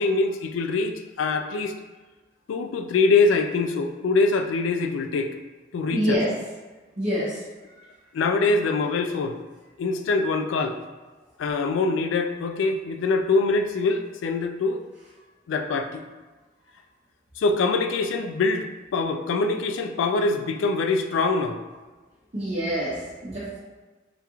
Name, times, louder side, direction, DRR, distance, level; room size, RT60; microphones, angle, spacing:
voice 1, 0.0-1.7 2.5-5.3 5.7-6.2 8.1-9.4 9.8-10.8 11.4-14.8 15.5-16.0 17.4-18.7 18.9-21.6, left 3 dB, 85° left, 6 dB, 0.3 m, -24 dB
voice 2, 5.9-6.3 7.0-7.4 22.3-23.6, equal, 35° right, -10 dB, 0.6 m, -26 dB
3.4 x 2.4 x 2.9 m, 1.2 s
head